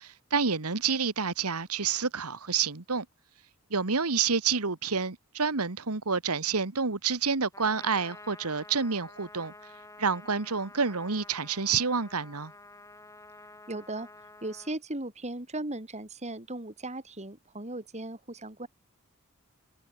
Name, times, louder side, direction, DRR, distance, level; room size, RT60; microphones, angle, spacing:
voice 1, 0.0-3.0 3.7-9.5 10.0-12.5, right 5 dB, 85° right, 1.6 m, -28 dB
Trumpet, 7.5-14.8, left 2 dB, 15° left, 6.5 m, -50 dB
voice 2, 13.7-14.1 14.4-18.7, right 2 dB, 30° right, 3.0 m, -37 dB
head